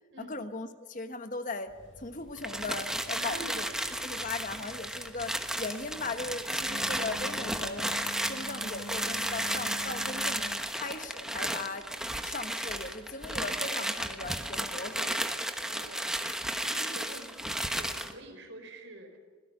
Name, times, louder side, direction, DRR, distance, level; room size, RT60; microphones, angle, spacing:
voice 1, 0.2-3.7 4.0-7.9 8.3-11.9 12.2-15.1 15.7-15.9, left 3 dB, 40° left, 9 dB, 1.2 m, -38 dB
Telephone, 1.7-10.6, left 2 dB, 70° left, 7.5 m, -47 dB
sound 1, 2.4-18.1, right 1 dB, 5° right, 1.1 m, -33 dB
voice 2, 3.1-4.2 14.8-15.1 15.7-19.2, right 2 dB, 70° right, 3 dB, 5.0 m, -47 dB
25.5 x 17.0 x 6.8 m, 1.5 s
head